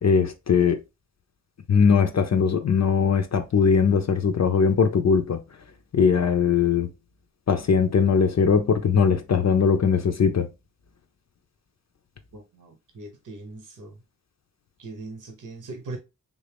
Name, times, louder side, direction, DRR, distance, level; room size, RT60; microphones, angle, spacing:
voice 1, 0.0-0.8 1.7-5.4 5.9-6.9 7.5-10.5, left 6 dB, 55° left, 0.5 m, -20 dB
voice 2, 12.3-14.0 14.8-16.0, right 2 dB, 70° right, 0.9 m, -40 dB
3.5 x 2.5 x 3.3 m
wide cardioid pair, 70°, 32 cm